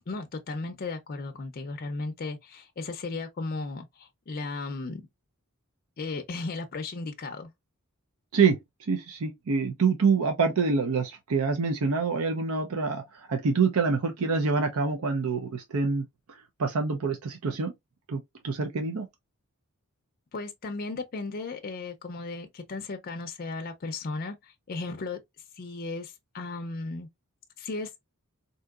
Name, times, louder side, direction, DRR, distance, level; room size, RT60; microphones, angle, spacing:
voice 1, 0.1-5.1 6.0-7.5 20.3-25.2 25.6-27.1 27.6-27.9, left 3 dB, 45° left, 0.5 m, -35 dB
voice 2, 8.9-13.0 13.3-16.0 16.6-17.7 18.1-19.1, right 4 dB, 80° right, 0.6 m, -26 dB
3.7 x 2.7 x 2.3 m
head